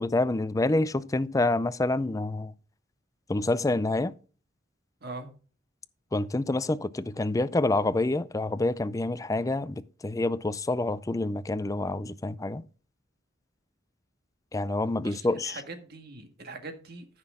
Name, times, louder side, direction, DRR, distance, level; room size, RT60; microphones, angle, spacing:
voice 1, 0.0-2.5 3.3-4.1 6.1-12.6 14.5-15.6, left 2 dB, 15° left, 0.4 m, -27 dB
voice 2, 5.0-5.3 15.0-17.1, right 3 dB, 55° right, 1.8 m, -42 dB
14.0 x 6.1 x 3.7 m
head